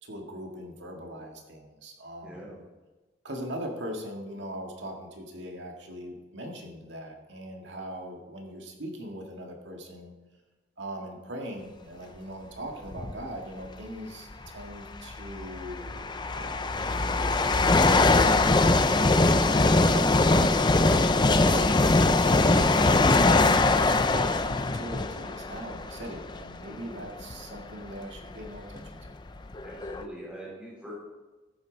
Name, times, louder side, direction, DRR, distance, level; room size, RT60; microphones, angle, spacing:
voice 1, 0.0-2.4 3.2-10.1 10.8-17.2 18.6-19.2 19.9-20.6 21.3-29.2, right 1 dB, 80° right, 2 dB, 1.9 m, -40 dB
voice 2, 2.2-2.6 12.7-12.9 26.8-27.0 29.6-30.9, right 1 dB, 5° right, -6 dB, 3.6 m, -44 dB
sound 1, 12.9-13.2 14.3-14.4 15.2-26.6 27.2-27.3 28.2-28.3 28.5-30.0, left 3 dB, 25° left, 0.5 m, -22 dB
13.5 x 8.4 x 4.0 m, 1.2 s
head